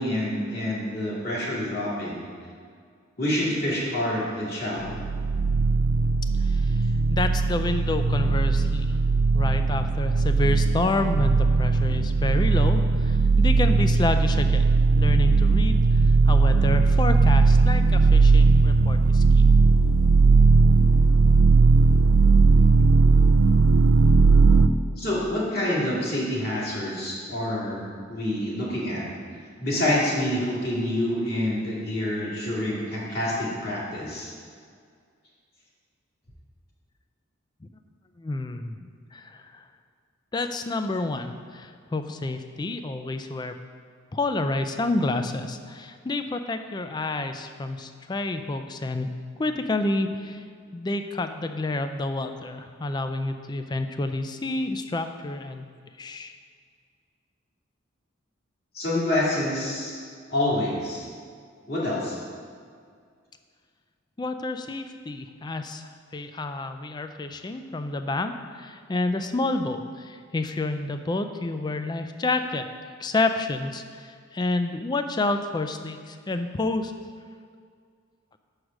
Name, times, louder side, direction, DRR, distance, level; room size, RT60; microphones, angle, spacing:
voice 1, 0.0-2.3 3.2-5.0 25.0-29.0 29.6-34.3 58.7-60.0 60.3-61.1 61.7-62.2, left 1 dB, 50° left, -6 dB, 2.0 m, -27 dB
sound 1, 4.8-24.7, right 3 dB, 90° right, 0.3 m, -18 dB
voice 2, 6.3-9.0 9.3-19.4 27.3-27.4 37.6-37.7 38.2-38.8 39.1-39.7 40.3-43.6 44.1-50.5 50.7-55.7 56.0-56.4 64.2-76.9, left 2 dB, 20° left, 8 dB, 0.3 m, -29 dB
6.0 x 4.8 x 6.3 m, 2.1 s
head